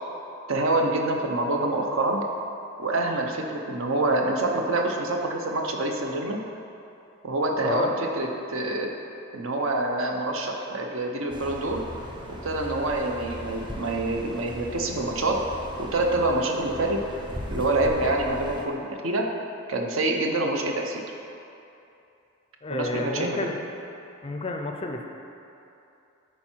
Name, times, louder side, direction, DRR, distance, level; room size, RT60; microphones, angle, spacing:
voice 1, 0.5-2.2 2.8-6.4 7.2-8.9 9.3-11.8 12.4-15.4 15.8-17.0 17.5-19.3 19.7-21.0 22.7-23.4, right 2 dB, 65° right, 2 dB, 0.8 m, -26 dB
voice 2, 7.6-7.9 22.6-23.6 24.2-25.1, left 2 dB, 25° left, 3 dB, 0.4 m, -30 dB
sound 1, 11.3-18.6, equal, 20° right, 0.7 m, -38 dB
10.0 x 4.4 x 4.5 m, 2.8 s
head